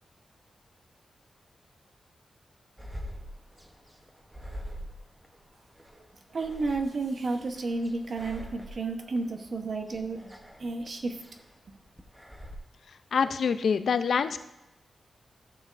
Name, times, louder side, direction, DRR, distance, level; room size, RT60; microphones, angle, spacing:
sound 1, 2.8-12.6, equal, 5° right, 0.8 m, -45 dB
voice 1, 6.3-11.2, right 3 dB, 55° right, 5 dB, 1.0 m, -32 dB
voice 2, 13.1-14.4, left 6 dB, 70° left, 11 dB, 0.4 m, -26 dB
14.0 x 6.7 x 2.5 m, 0.93 s
wide cardioid pair, 120°, 0 cm